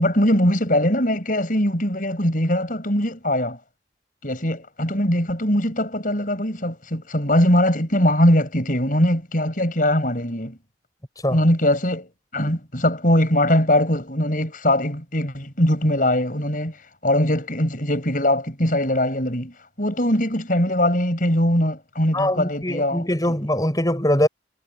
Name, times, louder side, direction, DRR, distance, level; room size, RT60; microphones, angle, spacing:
voice 1, 0.0-3.6 4.2-10.6 11.3-16.8 17.0-23.3, left 1 dB, 45° left, 7.4 m, -21 dB
voice 2, 22.1-24.3, left 1 dB, 20° left, 6.4 m, -22 dB
head